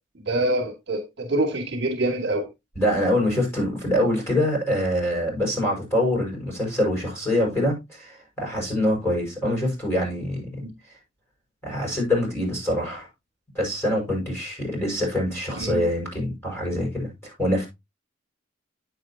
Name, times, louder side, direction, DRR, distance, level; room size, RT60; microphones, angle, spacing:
voice 1, 0.1-2.5 7.6-7.7 10.6-10.7 15.6-15.8, right 1 dB, 60° right, 2.4 m, -26 dB
voice 2, 2.8-10.6 11.6-13.1 13.5-17.7, left 1 dB, 15° left, 6.1 m, -25 dB
9.2 x 7.9 x 2.9 m
head